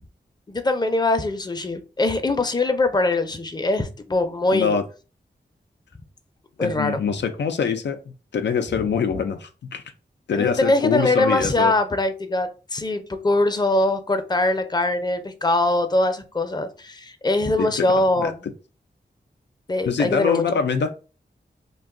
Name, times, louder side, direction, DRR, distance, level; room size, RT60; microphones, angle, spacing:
voice 1, 0.5-4.7 6.6-7.0 9.1-9.2 10.3-18.4 19.7-20.6, left 2 dB, 25° left, 0.5 m, -22 dB
voice 2, 4.5-4.8 6.6-8.0 8.3-9.8 10.3-11.7 17.6-18.3 19.8-20.9, left 6 dB, 80° left, 0.4 m, -24 dB
2.5 x 2.3 x 3.6 m
cardioid pair, 50°, 18 cm